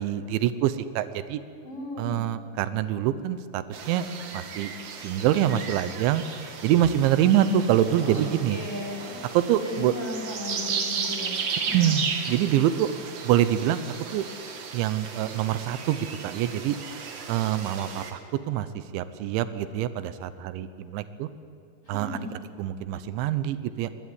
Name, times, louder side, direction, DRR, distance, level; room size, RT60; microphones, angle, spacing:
voice 1, 0.0-1.4 2.0-4.1 4.3-4.7 5.0-6.2 6.6-8.6 9.3-9.9 11.7-12.9 13.2-13.8 14.1-14.3 14.7-16.8 17.3-18.2 18.5-18.7 18.9-21.3 21.9-22.1 22.6-23.9, right 11 dB, 90° right, 13 dB, 3.3 m, -25 dB
voice 2, 1.6-2.2 8.0-9.2 9.6-11.9 21.8-22.3, left 1 dB, 15° left, -2 dB, 6.0 m, -36 dB
sound 1, 3.7-18.1, right 5 dB, 50° right, 2.1 m, -35 dB
22.0 x 20.5 x 9.7 m, 2.4 s
omnidirectional pair, 5.2 m